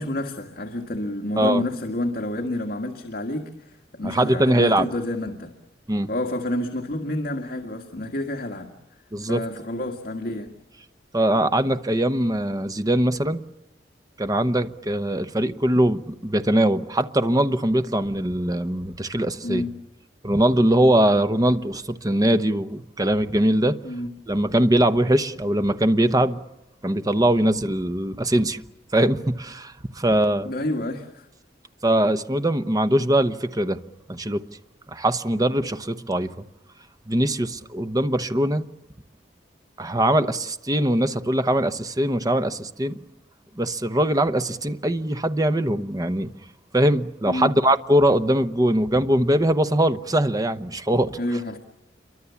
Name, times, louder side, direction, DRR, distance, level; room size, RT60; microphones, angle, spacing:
voice 1, 0.0-5.5 6.1-8.7 9.3-10.5 19.4-19.8 23.8-24.1 30.4-31.3 47.3-47.6 51.2-51.6, left 1 dB, 55° left, 1.9 m, -29 dB
voice 2, 4.0-4.9 5.9-6.1 9.1-9.4 11.1-13.4 14.2-19.6 20.2-23.8 24.3-26.4 26.8-28.6 28.9-30.5 31.8-33.8 34.1-34.4 34.9-36.3 37.1-38.7 39.8-42.9 43.6-46.3 46.7-51.2, right 1 dB, 20° right, 1.0 m, -21 dB
28.5 x 24.0 x 7.1 m
head